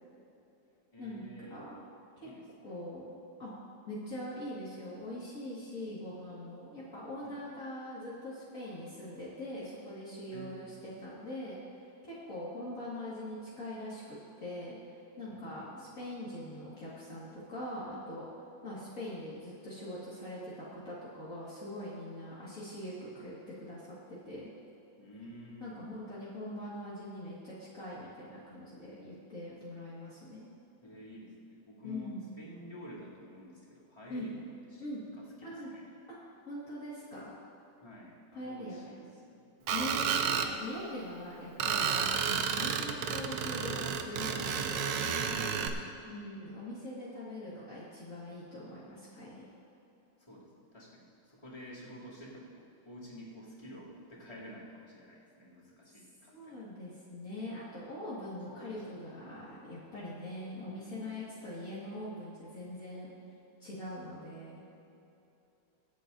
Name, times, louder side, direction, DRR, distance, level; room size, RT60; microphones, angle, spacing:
voice 1, 0.9-1.6 2.2-2.7 7.2-7.5 10.3-10.8 15.3-15.8 25.0-25.9 30.8-34.4 34.7-34.8 35.1-35.9 37.8-39.5 45.2-46.1 50.2-56.6 58.5-59.0 59.3-59.4 60.6-61.2, equal, 20° left, -9 dB, 2.9 m, -50 dB
voice 2, 1.5-1.8 2.2-2.3 2.6-3.5 3.9-11.6 12.1-18.3 18.6-24.5 25.6-30.5 31.8-32.2 34.1-34.3 34.8-35.0 35.4-35.7 36.1-36.2 36.5-37.3 38.3-39.0 39.7-45.1 46.1-49.5 56.3-63.1 63.6-64.6, left 1 dB, 50° left, -9 dB, 2.3 m, -42 dB
Screech, 39.7-40.5 41.6-45.7, right 7 dB, 80° right, 1.4 m, -31 dB
24.0 x 8.4 x 2.7 m, 2.8 s
omnidirectional pair, 2.0 m